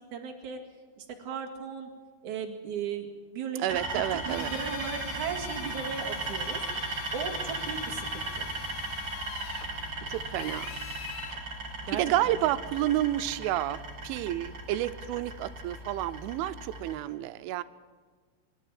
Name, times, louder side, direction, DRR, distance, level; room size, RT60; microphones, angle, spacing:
voice 1, 0.1-0.6 1.0-1.9 2.2-3.1 3.3-3.7 3.9-6.6 7.1-8.5 11.8-12.3, right 7 dB, 50° right, 2 dB, 2.9 m, -36 dB
voice 2, 3.6-4.5 10.1-10.8 11.9-17.6, right 14 dB, 90° right, 13 dB, 3.2 m, -30 dB
sound 1, 3.7-16.9, right 2 dB, 30° right, 5.7 m, -37 dB
Drill, 4.3-11.4, left 9 dB, 80° left, 3.7 m, -43 dB
24.0 x 12.0 x 9.4 m, 1.5 s
omnidirectional pair, 5.4 m